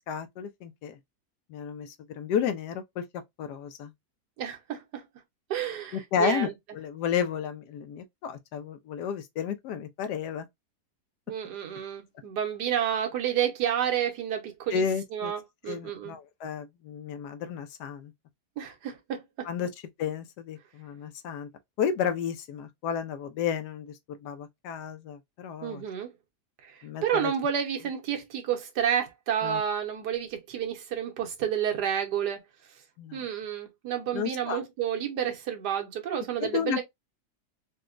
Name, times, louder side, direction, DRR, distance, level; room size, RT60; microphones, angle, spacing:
voice 1, 0.1-1.0 1.5-3.9 5.9-10.5 14.7-15.3 15.7-18.1 19.4-19.7 20.0-21.5 21.8-25.8 26.8-27.3 29.4-29.6 33.0-33.2 34.1-34.6 36.4-36.8, left 7 dB, 85° left, 1.2 m, -32 dB
voice 2, 4.4-5.1 5.5-6.5 11.3-14.8 15.1-16.2 18.6-19.5 25.6-26.1 26.6-32.4 33.1-36.8, right 9 dB, 80° right, 1.5 m, -30 dB
4.0 x 2.2 x 2.4 m
omnidirectional pair, 1.7 m